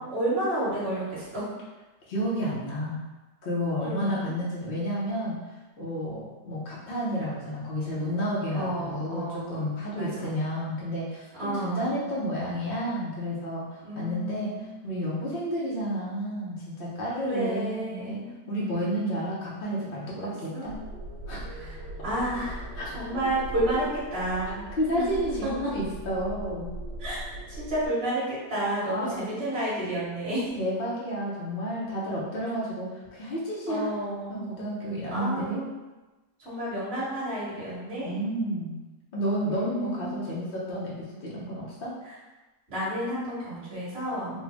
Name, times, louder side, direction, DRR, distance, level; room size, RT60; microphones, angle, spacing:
voice 1, 0.0-1.4 3.8-4.3 8.5-9.6 9.9-10.3 11.4-12.0 13.8-14.6 17.2-18.3 20.1-20.7 21.5-21.8 22.0-22.6 22.9-24.6 25.4-25.7 27.0-27.2 27.5-30.4 33.7-34.6 35.1-35.7 36.4-38.1 39.5-40.2 42.0-42.1 42.7-44.4, right 1 dB, 40° right, -10 dB, 1.8 m, -31 dB
voice 2, 2.1-3.0 3.4-5.4 5.8-14.5 14.8-18.2 18.5-20.8 21.3-21.4 22.8-22.9 24.8-26.7 28.9-29.3 30.6-33.9 34.3-35.6 38.0-38.7 39.1-42.0 44.3-44.4, equal, 50° left, -6 dB, 0.7 m, -31 dB
sound 1, 20.6-27.9, right 1 dB, 55° right, 1.6 m, -39 dB
4.3 x 2.2 x 3.4 m, 1.1 s
omnidirectional pair, 1.8 m